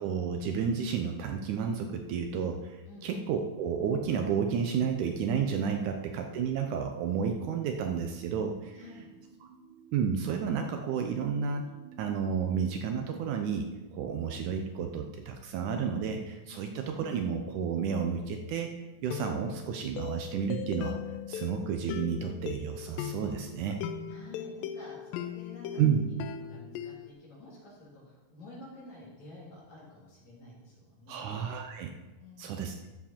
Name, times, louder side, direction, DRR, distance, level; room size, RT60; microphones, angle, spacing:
voice 1, 0.0-8.8 9.9-11.7 12.0-18.7 19.0-21.0 21.3-23.8 25.8-26.0 31.1-31.9 32.4-32.7, right 7 dB, 75° right, 4 dB, 2.0 m, -31 dB
sound 1, 7.5-14.4, right 6 dB, 60° right, 2.3 m, -54 dB
voice 2, 8.7-9.1 16.5-16.7 24.1-31.2 32.2-32.6, left 2 dB, 55° left, -6 dB, 4.6 m, -50 dB
sound 2, 18.2-18.5 19.1-27.1, left 9 dB, 85° left, 2.2 m, -39 dB
13.0 x 7.3 x 4.4 m, 1.1 s
omnidirectional pair, 3.9 m